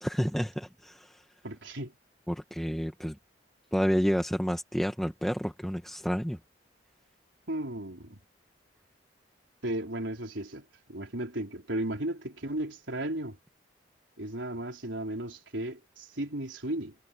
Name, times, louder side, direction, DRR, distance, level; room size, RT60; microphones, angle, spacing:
voice 1, 0.0-1.2 2.3-3.2 3.7-6.4, equal, ahead, 1.1 m, -30 dB
voice 2, 1.4-1.9 7.5-8.2 9.6-13.4 14.2-16.9, right 1 dB, 90° right, 4.6 m, -35 dB
head